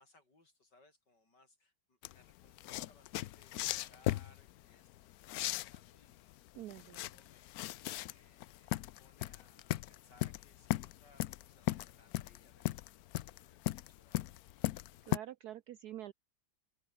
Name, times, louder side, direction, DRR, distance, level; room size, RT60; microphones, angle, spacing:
voice 1, 0.0-6.3 6.6-14.4, left 2 dB, 55° left, 7.3 m, -68 dB
sound 1, 2.0-15.2, left 15 dB, 85° left, 0.8 m, -38 dB
voice 2, 6.5-7.1 15.0-16.1, right 12 dB, 70° right, 0.9 m, -46 dB
open air
omnidirectional pair, 2.2 m